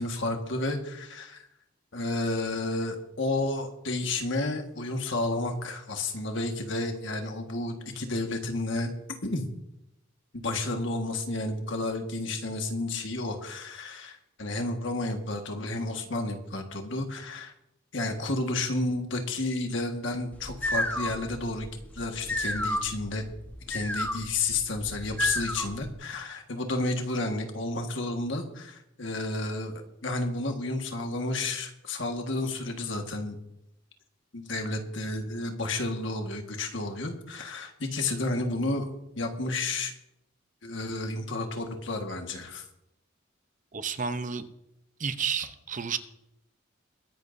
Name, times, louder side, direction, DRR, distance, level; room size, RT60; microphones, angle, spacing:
voice 1, 0.0-1.5 1.9-8.9 9.2-9.4 10.3-17.5 17.9-21.7 21.9-23.2 23.7-33.4 34.3-39.9 40.6-42.6, left 2 dB, 65° left, 4 dB, 1.7 m, -31 dB
sound 1, 20.3-25.9, left 1 dB, 10° left, 1.1 m, -32 dB
voice 2, 43.7-44.5 45.0-46.0, right 6 dB, 40° right, 10 dB, 0.7 m, -31 dB
22.0 x 11.0 x 2.7 m, 0.85 s
head